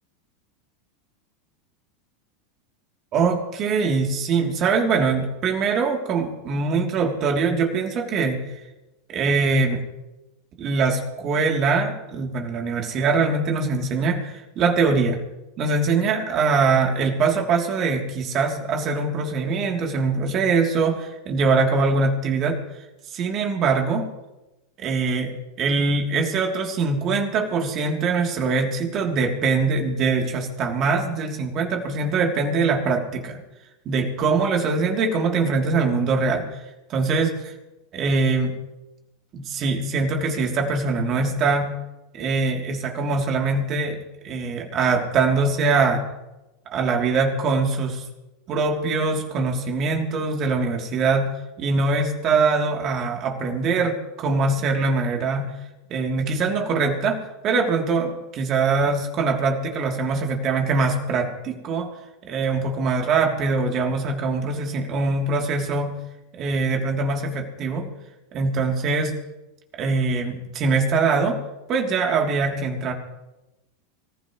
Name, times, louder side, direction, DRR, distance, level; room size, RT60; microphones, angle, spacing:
voice 1, 3.1-8.4 9.1-9.8 10.6-15.2 15.6-22.6 23.1-24.1 24.8-33.4 33.8-36.5 36.9-37.5 37.9-38.5 39.3-41.8 42.1-46.0 46.7-48.0 48.5-55.5 55.9-61.9 62.2-66.0 66.3-67.9 68.3-69.1 69.8-71.4 71.7-72.9, right 4 dB, 45° right, 2 dB, 3.1 m, -23 dB
25.5 x 15.0 x 3.2 m, 1.0 s
hypercardioid pair, 90°, 0 cm